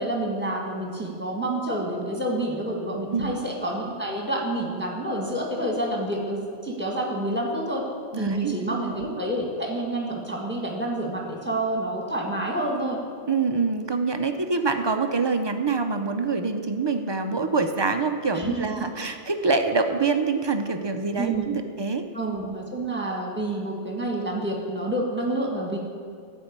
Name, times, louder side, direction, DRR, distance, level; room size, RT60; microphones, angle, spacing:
voice 1, 0.0-7.8 8.1-13.0 18.3-19.1 21.2-21.6 22.1-25.8, right 1 dB, 10° right, -1 dB, 1.8 m, -28 dB
voice 2, 8.1-8.5 13.3-22.0, right 4 dB, 35° right, 6 dB, 0.5 m, -25 dB
13.5 x 4.5 x 8.7 m, 2.3 s
omnidirectional pair, 1.1 m